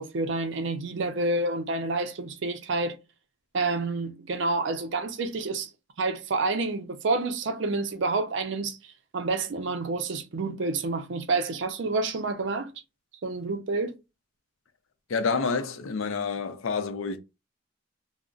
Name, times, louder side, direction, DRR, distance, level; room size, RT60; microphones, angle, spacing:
voice 1, 0.0-3.0 3.5-5.7 6.0-12.7 13.2-13.9, right 3 dB, 60° right, 0.5 m, -29 dB
voice 2, 15.1-17.2, left 5 dB, 75° left, 0.5 m, -28 dB
2.4 x 2.0 x 3.7 m
head